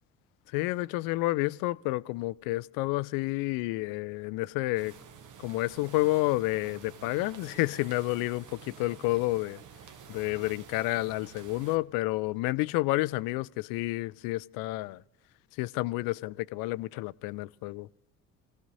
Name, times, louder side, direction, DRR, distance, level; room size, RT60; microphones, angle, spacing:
voice 1, 0.5-4.9 5.4-9.6 10.1-15.0 15.5-17.9, left 20 dB, 60° left, 0.5 m, -30 dB
sound 1, 4.7-11.8, right 7 dB, 50° right, 1.1 m, -49 dB
25.0 x 16.5 x 2.7 m
hypercardioid pair, 55°, 39 cm